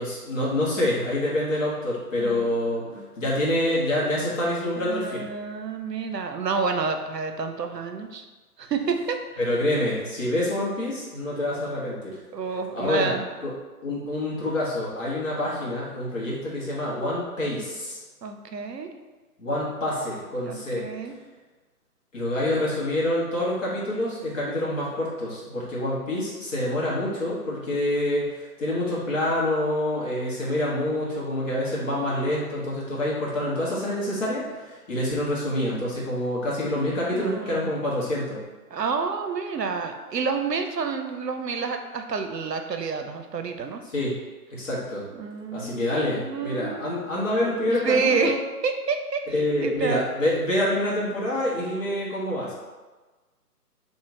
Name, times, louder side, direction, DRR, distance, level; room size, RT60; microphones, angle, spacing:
voice 1, 0.0-2.8 3.2-5.3 9.4-12.2 12.7-13.5 13.8-18.0 19.4-20.8 22.1-28.3 28.6-38.4 43.9-44.1 44.5-45.0 45.5-48.4 49.3-52.5, left 1 dB, 50° left, -6 dB, 1.4 m, -27 dB
voice 2, 4.8-8.3 8.6-9.2 12.3-13.3 18.2-18.9 20.4-21.1 36.8-37.7 38.7-43.8 45.2-46.9 47.7-49.3 49.6-50.0, right 5 dB, 90° right, 5 dB, 0.6 m, -29 dB
2.9 x 2.9 x 3.5 m, 1.2 s
figure-of-eight pair, 140°, 48 cm